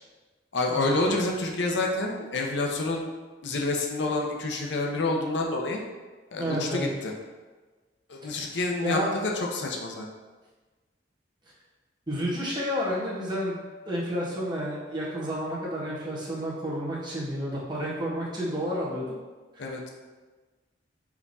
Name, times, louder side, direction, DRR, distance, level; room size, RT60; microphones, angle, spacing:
voice 1, 0.5-3.1 3.4-5.8 6.3-7.1 8.1-10.1 19.6-19.9, left 2 dB, 70° left, 0 dB, 0.8 m, -28 dB
voice 2, 6.4-6.9 8.3-8.5 8.8-9.1 12.1-13.6 13.8-19.1 19.6-19.9, equal, 25° right, -7 dB, 1.5 m, -30 dB
4.8 x 3.6 x 5.4 m, 1.3 s
head